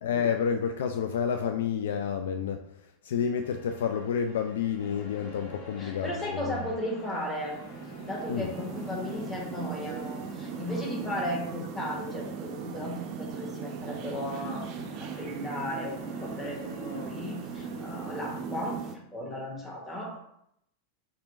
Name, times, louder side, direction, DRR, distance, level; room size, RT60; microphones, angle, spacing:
voice 1, 0.0-2.6 3.0-6.5 8.3-8.5, left 7 dB, 60° left, 5 dB, 0.3 m, -29 dB
sound 1, 3.4-12.7 14.2-18.4, equal, 75° left, 1.4 m, -53 dB
sound 2, 4.8-9.8, left 3 dB, 30° left, 0.9 m, -51 dB
voice 2, 5.8-7.5 8.1-14.7 15.0-18.8 19.1-20.2, left 1 dB, 15° left, -2 dB, 1.3 m, -35 dB
sound 3, 7.1-19.0, right 5 dB, 40° right, 0.5 m, -38 dB
4.2 x 2.6 x 4.2 m, 0.75 s
figure-of-eight pair, 90°, 0 cm